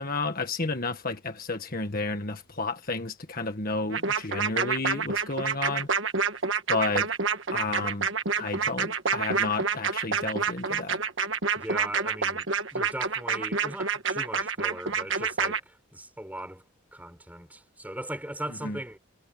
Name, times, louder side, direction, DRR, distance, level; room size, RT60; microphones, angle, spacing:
voice 1, 0.0-5.9 6.7-7.1 7.5-8.1 8.4-11.0 18.6-18.8, left 3 dB, 45° left, 1.6 m, -31 dB
sound 1, 3.9-15.6, right 5 dB, 65° right, 1.5 m, -28 dB
voice 2, 11.5-16.6 16.9-19.0, right 1 dB, 10° right, 5.6 m, -39 dB
head